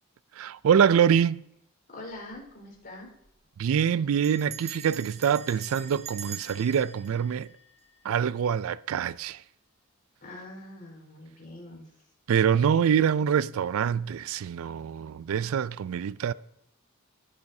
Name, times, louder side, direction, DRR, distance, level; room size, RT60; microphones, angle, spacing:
voice 1, 0.4-1.4 3.6-7.5 8.0-9.4 12.3-16.3, right 8 dB, 70° right, 0.3 m, -25 dB
voice 2, 1.9-3.1 10.2-11.8, left 1 dB, 45° left, 4.3 m, -43 dB
Bell, 2.1-2.5 2.8-2.9 3.1-3.5 4.2-8.3, right 6 dB, 30° right, 0.9 m, -44 dB
20.5 x 8.7 x 2.7 m
head